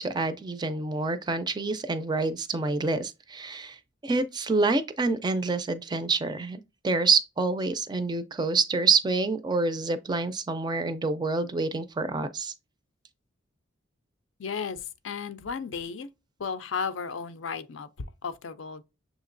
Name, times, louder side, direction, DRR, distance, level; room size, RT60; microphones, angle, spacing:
voice 1, 0.0-3.8 4.0-12.5, right 3 dB, 20° right, 0.4 m, -27 dB
voice 2, 14.4-16.1 16.4-17.9 18.2-18.8, left 6 dB, 75° left, 0.5 m, -34 dB
6.4 x 2.9 x 2.5 m
head